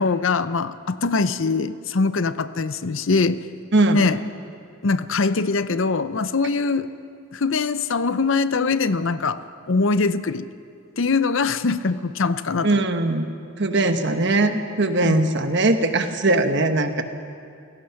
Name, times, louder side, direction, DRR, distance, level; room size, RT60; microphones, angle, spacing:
voice 1, 0.0-3.4 3.9-4.2 4.8-6.9 7.3-9.4 9.7-10.4 11.0-12.9 15.0-15.3, left 4 dB, 65° left, 13 dB, 0.7 m, -22 dB
voice 2, 3.7-4.0 12.6-17.0, right 2 dB, 55° right, 7 dB, 1.2 m, -20 dB
28.5 x 17.5 x 5.9 m, 2.4 s
head